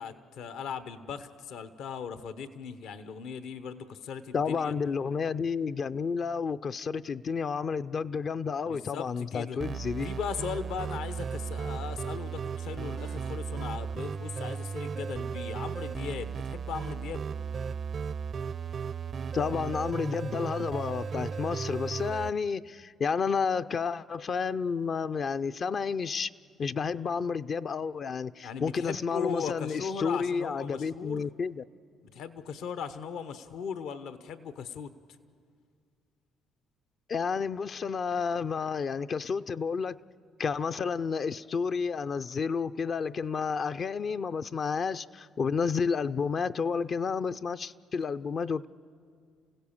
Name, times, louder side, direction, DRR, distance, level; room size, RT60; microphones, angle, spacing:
voice 1, 0.0-4.7 8.6-9.6 10.0-17.2 28.4-31.3 32.0-34.9, left 6 dB, 75° left, 0.9 m, -38 dB
voice 2, 4.3-10.1 19.3-26.3 26.6-31.6 37.1-40.0 40.4-48.7, left 5 dB, 50° left, 0.5 m, -31 dB
sound 1, 9.6-22.3, right 6 dB, 50° right, 0.5 m, -35 dB
29.5 x 16.0 x 7.2 m
supercardioid pair, 65°, 0 cm